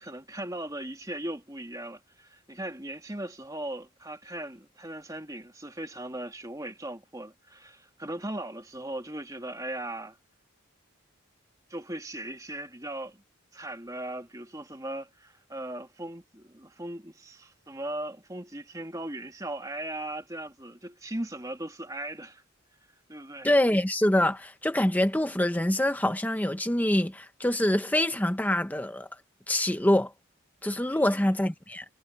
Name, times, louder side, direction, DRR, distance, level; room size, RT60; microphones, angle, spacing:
voice 1, 0.0-10.2 11.7-13.2 13.5-22.4 23.1-23.5 30.9-31.3, right 1 dB, 15° right, 2.3 m, -38 dB
voice 2, 23.4-29.1 29.5-30.1 30.6-31.8, left 1 dB, 10° left, 0.8 m, -25 dB
head